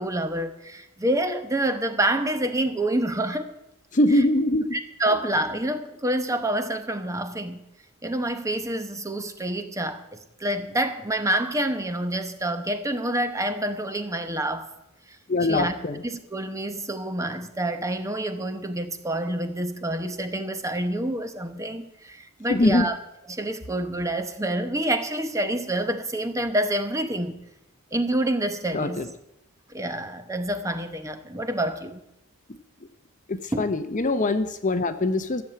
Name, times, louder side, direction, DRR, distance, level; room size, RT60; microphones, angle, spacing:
voice 1, 0.0-3.5 4.7-7.6 8.0-14.7 15.1-23.0 23.3-27.4 27.9-29.0 29.7-32.0 33.5-33.7, right 1 dB, 15° right, 0.9 m, -27 dB
voice 2, 3.9-4.8 15.3-16.0 22.5-22.9 28.7-29.1 33.3-35.4, left 2 dB, 35° left, 0.7 m, -23 dB
14.0 x 7.2 x 8.6 m
head